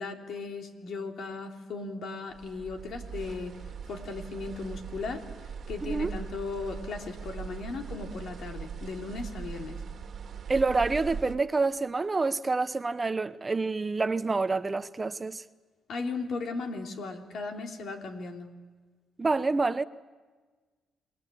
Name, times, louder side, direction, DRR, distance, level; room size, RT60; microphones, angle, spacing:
voice 1, 0.0-3.6 3.9-9.8 15.9-18.5, left 3 dB, 65° left, 3.3 m, -37 dB
sound 1, 2.3-11.4, right 6 dB, 55° right, 1.8 m, -40 dB
voice 2, 10.5-15.4 19.2-19.8, right 3 dB, 25° right, 0.8 m, -27 dB
28.0 x 21.0 x 8.6 m
cardioid pair, 90°, 0 cm